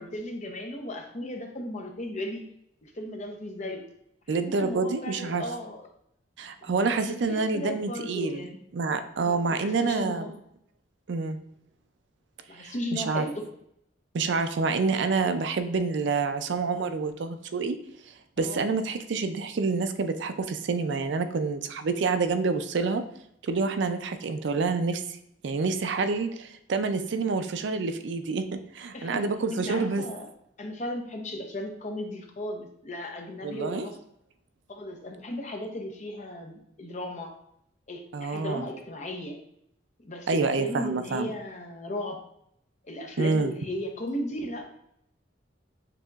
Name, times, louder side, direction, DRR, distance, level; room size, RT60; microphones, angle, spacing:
voice 1, 0.0-2.4 2.8-3.9 4.3-5.8 6.6-8.6 9.2-10.3 12.5-13.4 18.4-18.6 28.9-30.3 30.6-34.0 34.7-37.3 37.9-39.4 40.0-42.2 42.8-44.6, left 1 dB, 40° left, 3 dB, 0.7 m, -36 dB
voice 2, 4.3-5.4 6.4-8.4 8.7-10.3 11.1-11.4 12.6-13.2 14.1-17.8 18.4-23.0 23.4-25.0 25.4-30.0 33.4-33.9 38.1-38.6 40.3-41.3 43.2-43.5, right 4 dB, 65° right, 9 dB, 0.4 m, -27 dB
6.7 x 2.9 x 2.4 m, 0.74 s
head